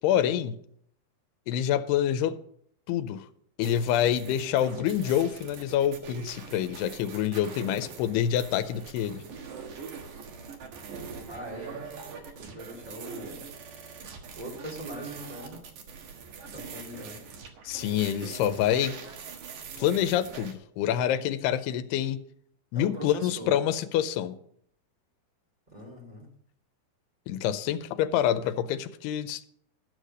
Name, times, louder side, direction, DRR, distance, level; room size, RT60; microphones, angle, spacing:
voice 1, 0.0-0.6 1.5-2.4 2.9-3.3 3.6-9.2 17.6-19.0 19.8-22.2 22.7-24.4 27.3-29.5, left 10 dB, 85° left, 2.7 m, -27 dB
sound 1, 3.6-20.5, right 6 dB, 60° right, 2.5 m, -43 dB
voice 2, 11.3-11.8 12.4-13.5 14.4-15.6 16.5-17.2 22.7-23.6 25.7-26.3, equal, 15° right, 1.7 m, -41 dB
12.5 x 6.6 x 6.4 m
omnidirectional pair, 4.6 m